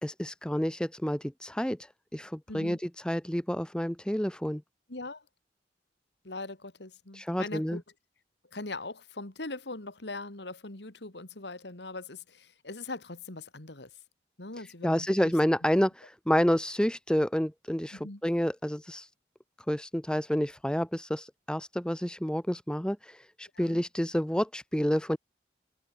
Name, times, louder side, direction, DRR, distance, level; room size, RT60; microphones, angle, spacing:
voice 1, 0.0-4.6 7.1-7.8 14.8-19.1 19.7-25.2, equal, 5° left, 0.9 m, -29 dB
voice 2, 2.5-2.8 4.9-5.2 6.2-7.8 8.5-13.9 14.4-15.3 17.9-18.2 23.5-23.8, left 2 dB, 70° left, 2.4 m, -41 dB
head